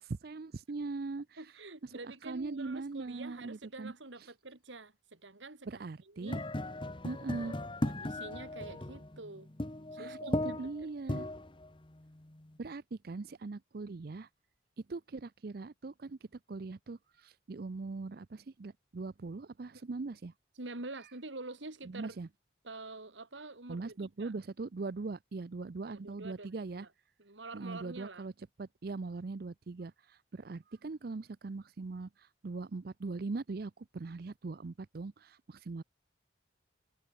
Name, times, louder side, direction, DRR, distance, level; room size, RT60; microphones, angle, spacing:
voice 1, 0.0-1.4 2.2-3.9 5.7-6.4 7.0-7.5 10.0-11.3 12.6-14.3 14.9-16.2 16.5-20.3 21.9-22.3 23.7-26.9 27.5-28.3 28.6-35.8, right 3 dB, 50° right, 0.5 m, -41 dB
voice 2, 1.4-6.4 7.4-9.5 9.9-11.2 19.7-19.8 20.6-22.2 22.6-24.3 25.9-26.9 27.2-28.3, right 2 dB, 75° right, 2.6 m, -47 dB
sound 1, 6.3-12.6, left 1 dB, 25° left, 1.1 m, -38 dB
head